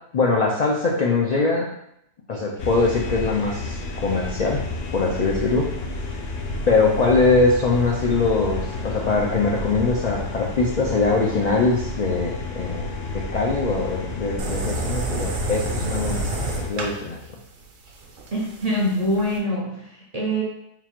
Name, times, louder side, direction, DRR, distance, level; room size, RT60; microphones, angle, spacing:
voice 1, 0.1-1.7 2.3-4.6 4.9-5.7 6.7-17.2, left 3 dB, 75° left, -2 dB, 0.3 m, -22 dB
sound 1, 2.6-16.7, left 2 dB, 60° left, 0.7 m, -31 dB
sound 2, 14.4-19.4, right 3 dB, 70° right, 1.1 m, -30 dB
voice 2, 18.3-20.4, equal, 45° right, -4 dB, 0.5 m, -24 dB
3.8 x 2.4 x 4.4 m, 0.78 s
omnidirectional pair, 1.4 m